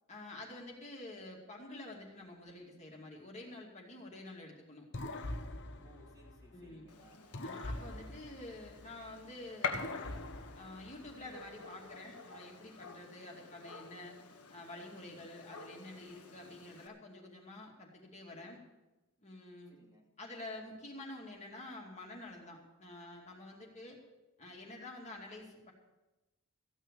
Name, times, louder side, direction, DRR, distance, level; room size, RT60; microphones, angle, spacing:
voice 1, 0.1-4.9 6.5-6.9 7.4-9.9 10.6-14.1 14.5-18.6 19.2-19.8 20.2-24.0 24.4-25.7, left 2 dB, 30° left, -1 dB, 2.5 m, -49 dB
sound 1, 4.9-6.8 7.3-9.2 9.7-11.4, left 1 dB, 55° left, 1.1 m, -44 dB
voice 2, 5.8-7.4 19.7-20.1, left 1 dB, 15° right, -1 dB, 2.6 m, -62 dB
Gunshot gunfire, 6.9-16.9, left 4 dB, 85° left, 1.6 m, -47 dB
15.0 x 9.2 x 7.0 m, 1.1 s
head